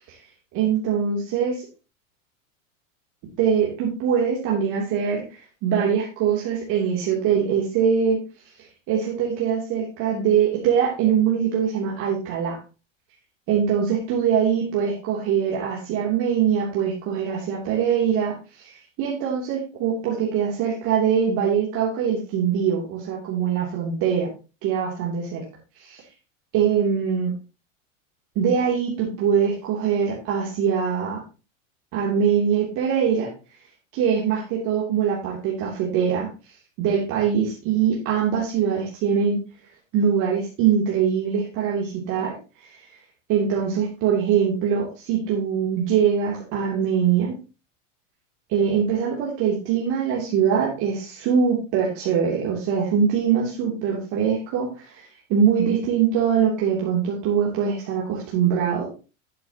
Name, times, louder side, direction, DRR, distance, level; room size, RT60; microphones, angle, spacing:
voice 1, 0.5-1.6 3.4-8.2 8.9-12.6 13.5-24.3 24.6-25.4 25.8-26.0 26.5-27.3 28.3-31.2 31.9-33.3 33.9-36.3 36.8-39.4 39.9-42.3 43.3-47.4 48.5-58.9, right 7 dB, 50° right, -3 dB, 3.1 m, -23 dB
11.5 x 7.8 x 2.9 m, 0.31 s
hypercardioid pair, 110°, 39 cm